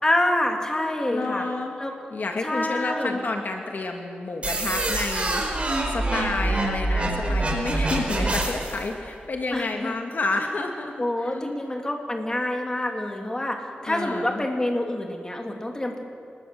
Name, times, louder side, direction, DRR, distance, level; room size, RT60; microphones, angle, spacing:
voice 1, 0.0-1.4 1.8-2.1 2.4-3.1 9.5-9.9 11.0-16.0, left 1 dB, 20° left, 2 dB, 3.0 m, -27 dB
voice 2, 1.1-1.7 2.1-10.9 11.2-11.6 13.8-14.4, left 3 dB, 55° left, 3 dB, 2.2 m, -30 dB
sound 1, 4.4-8.8, right 2 dB, 35° right, 4.9 m, -25 dB
26.5 x 20.5 x 7.8 m, 2.3 s
wide cardioid pair, 120°, 4 cm